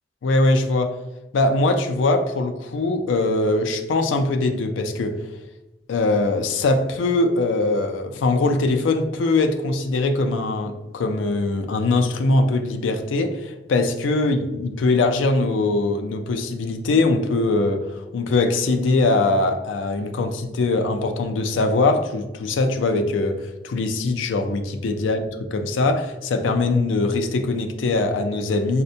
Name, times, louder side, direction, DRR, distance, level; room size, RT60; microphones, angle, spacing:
voice 1, 0.2-0.9 1.3-5.2 5.9-28.8, left 2 dB, 90° left, 0.4 m, -22 dB
4.2 x 2.1 x 2.6 m
head